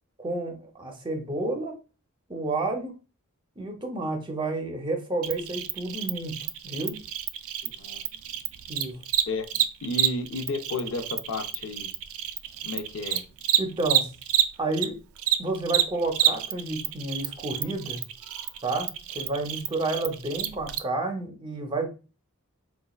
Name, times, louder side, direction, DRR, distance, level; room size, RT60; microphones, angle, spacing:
voice 1, 0.2-1.8 2.3-2.9 3.6-6.4 6.6-7.0 8.7-9.0 13.6-14.1 14.6-15.0 15.4-18.0 18.6-18.9 19.1-21.9, right 2 dB, 20° right, 3 dB, 0.6 m, -30 dB
Cricket, 5.2-14.9 15.2-20.8, right 11 dB, 70° right, 0.3 m, -28 dB
voice 2, 7.6-8.0 9.3-11.9 12.6-13.2, left 3 dB, 65° left, 6 dB, 0.5 m, -33 dB
4.1 x 2.3 x 2.3 m, 0.32 s
head